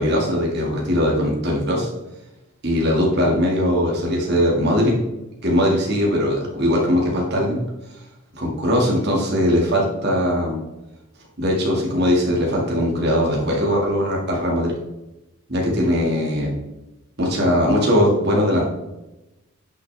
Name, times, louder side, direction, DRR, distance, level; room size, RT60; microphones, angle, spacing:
voice 1, 0.0-1.9 2.6-4.9 5.4-7.6 8.3-10.6 11.4-14.7 15.5-16.5 17.2-18.7, equal, 50° right, -2 dB, 2.1 m, -20 dB
10.0 x 6.2 x 3.4 m, 0.99 s
head